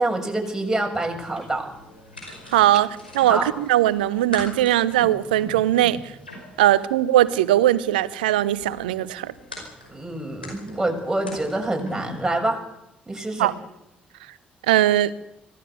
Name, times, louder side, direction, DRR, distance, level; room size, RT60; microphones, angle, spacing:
voice 1, 0.0-1.7 3.3-3.5 9.9-12.6 13.1-13.5, right 2 dB, 10° right, 7.0 m, -26 dB
sound 1, 1.2-12.2, left 1 dB, 85° left, 5.2 m, -42 dB
voice 2, 2.5-6.0 6.6-9.3 13.4-13.5 14.7-15.1, right 13 dB, 75° right, 0.9 m, -20 dB
25.0 x 17.0 x 8.2 m
figure-of-eight pair, 45°, 5 cm